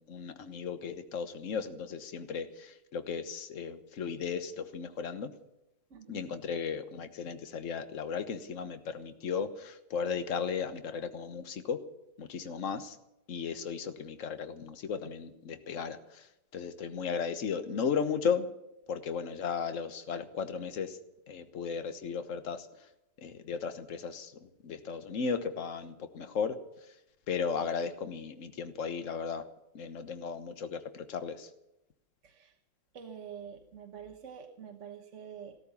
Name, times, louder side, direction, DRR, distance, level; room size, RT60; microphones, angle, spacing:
voice 1, 0.0-5.3 6.1-11.8 12.2-13.0 13.3-16.2 16.5-18.5 18.9-21.0 21.3-22.7 23.2-26.5 27.3-29.4 29.7-31.5, left 6 dB, 50° left, 9 dB, 1.4 m, -35 dB
voice 2, 5.9-6.3 12.4-12.5 32.2-32.5 32.9-35.6, right 7 dB, 45° right, 3 dB, 1.4 m, -47 dB
15.0 x 14.0 x 7.0 m, 0.88 s
omnidirectional pair, 2.0 m